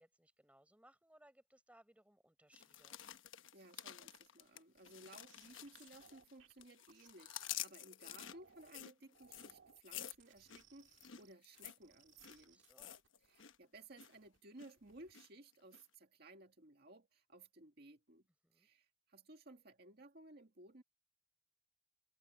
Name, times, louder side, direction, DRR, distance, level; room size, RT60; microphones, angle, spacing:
voice 1, 0.0-3.0 12.4-13.0 18.4-18.7, right 1 dB, 5° right, 4.6 m, -67 dB
sound 1, 2.5-6.3 6.6-13.6 13.8-14.2 14.6-15.3 15.7-15.8, left 11 dB, 90° left, 1.0 m, -50 dB
voice 2, 3.5-12.6 13.3-18.3 18.5-20.8, right 2 dB, 55° right, 2.0 m, -59 dB
sound 2, 4.8-7.6 8.1-8.8 9.1-13.4 13.7-14.4 14.8-15.1, right 7 dB, 85° right, 1.7 m, -67 dB
head